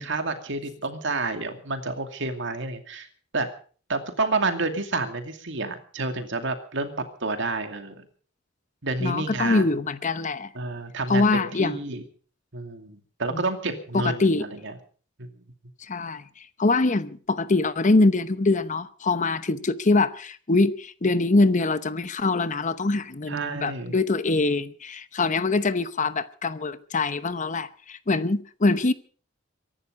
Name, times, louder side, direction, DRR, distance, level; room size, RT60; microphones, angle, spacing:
voice 1, 0.0-3.1 3.3-3.5 3.9-8.1 8.8-9.7 10.5-12.0 12.5-14.7 15.2-15.3 23.3-23.9, right 3 dB, 65° right, 2.5 m, -29 dB
voice 2, 9.0-10.5 11.1-11.8 13.3-13.4 13.9-14.4 15.9-16.2 16.6-28.9, left 3 dB, 40° left, 0.9 m, -23 dB
23.5 x 11.5 x 5.2 m
head